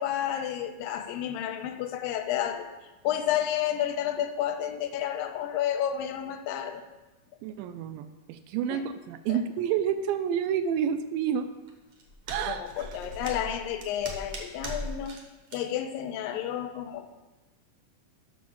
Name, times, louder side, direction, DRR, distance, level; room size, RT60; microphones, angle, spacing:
voice 1, 0.0-6.8 8.7-8.8 9.3-9.4 12.4-15.2 15.5-17.1, left 10 dB, 85° left, 6 dB, 2.3 m, -31 dB
voice 2, 7.4-11.5 12.3-12.6, right 8 dB, 80° right, 9 dB, 2.3 m, -29 dB
sound 1, 11.7-15.2 15.5-15.6, right 1 dB, 65° right, 1.4 m, -39 dB
7.3 x 6.3 x 5.8 m, 1.1 s
omnidirectional pair, 4.1 m